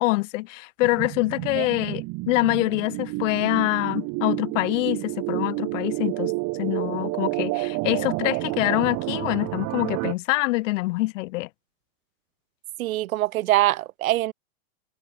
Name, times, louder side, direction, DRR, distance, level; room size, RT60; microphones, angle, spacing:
voice 1, 0.0-6.3 6.6-11.5, left 21 dB, 55° left, 3.5 m, -25 dB
sound 1, 0.8-10.1, right 25 dB, 45° right, 6.1 m, -29 dB
voice 2, 12.8-14.3, right 15 dB, 70° right, 2.9 m, -23 dB
supercardioid pair, 140°, 43 cm